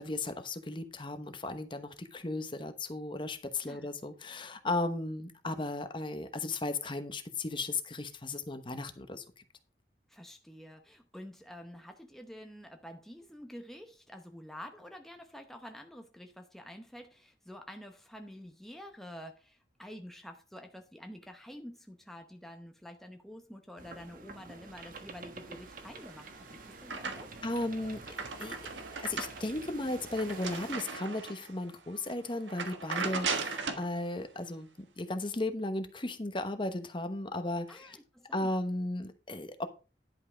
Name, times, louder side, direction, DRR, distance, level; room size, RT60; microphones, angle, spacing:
voice 1, 0.0-9.2 27.4-28.0 28.4-38.0 38.3-39.7, left 2 dB, 25° left, 1.0 m, -35 dB
voice 2, 10.1-27.3 37.7-38.5, equal, ahead, 0.8 m, -48 dB
sound 1, 23.8-30.8, right 3 dB, 50° right, 1.3 m, -49 dB
sound 2, 26.0-27.5 27.9-31.5 32.0-32.1 32.5-33.9, right 4 dB, 90° right, 1.5 m, -37 dB
11.0 x 5.5 x 5.0 m
head